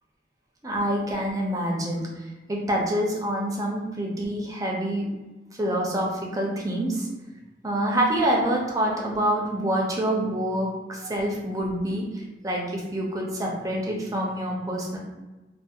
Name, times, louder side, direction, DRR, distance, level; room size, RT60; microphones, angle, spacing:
voice 1, 0.6-5.2 5.6-7.1 7.6-15.0, right 1 dB, 20° right, -1 dB, 0.4 m, -27 dB
2.6 x 2.0 x 2.3 m, 1.1 s
head